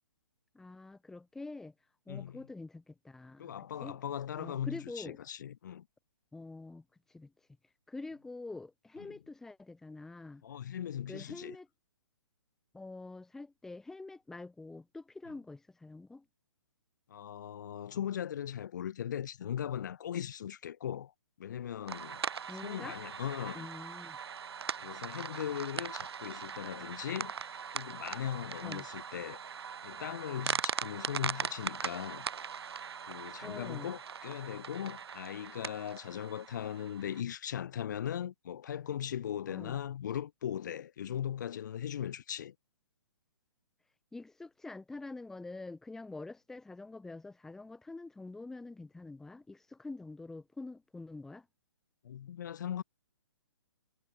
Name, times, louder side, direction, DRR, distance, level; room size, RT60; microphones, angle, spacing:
voice 1, 0.5-1.7 2.1-3.5 3.8-4.0 4.4-5.2 6.3-6.8 7.1-7.3 7.9-10.4 11.1-11.7 12.7-16.2 22.4-23.0 23.5-24.2 28.6-28.9 33.4-33.9 39.5-39.8 44.1-51.5, left 3 dB, 5° left, 2.5 m, -46 dB
voice 2, 2.1-2.4 3.4-5.9 9.0-9.2 10.4-11.6 15.3-15.4 17.1-21.1 21.4-22.2 22.6-23.7 24.8-29.4 29.8-32.3 33.0-42.5 52.0-52.8, left 9 dB, 40° left, 2.5 m, -39 dB
sound 1, 21.9-37.2, right 7 dB, 65° right, 1.8 m, -40 dB
hypercardioid pair, 165°, 15 cm